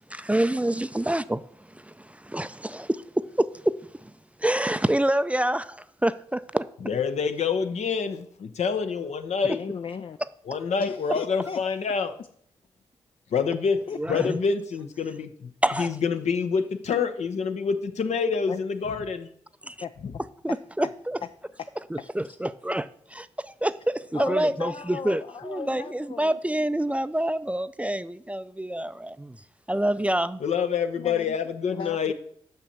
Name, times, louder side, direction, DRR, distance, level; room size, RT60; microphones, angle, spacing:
voice 1, 0.1-1.4 1.7-3.0 3.4-3.7 4.0-4.1 4.4-6.6 14.0-14.4 15.6-15.9 19.6-19.7 20.4-21.2 21.9-29.4 29.7-30.4, right 1 dB, 10° right, 0.4 m, -27 dB
voice 2, 6.8-9.6 10.4-12.1 13.3-13.8 14.1-15.5 15.8-19.3 20.0-20.1 30.4-32.1, left 6 dB, 65° left, 0.8 m, -27 dB
voice 3, 9.6-10.2 10.8-11.6 13.9-14.2 18.5-18.6 19.8-20.2 20.5-20.6 24.1-26.4 31.0-31.4 31.6-32.1, left 6 dB, 50° left, 0.4 m, -36 dB
6.0 x 5.7 x 6.7 m
supercardioid pair, 40°, 12 cm